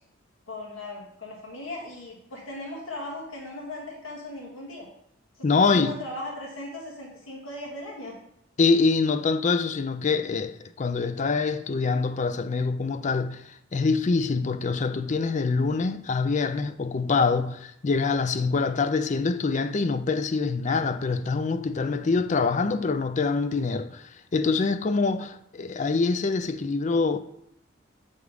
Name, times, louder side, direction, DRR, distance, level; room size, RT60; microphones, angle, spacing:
voice 1, 0.5-4.9 5.4-8.2, left 2 dB, 85° left, 1.8 m, -38 dB
voice 2, 5.4-5.9 8.6-27.2, left 4 dB, 40° left, 0.4 m, -25 dB
8.1 x 3.5 x 4.9 m
head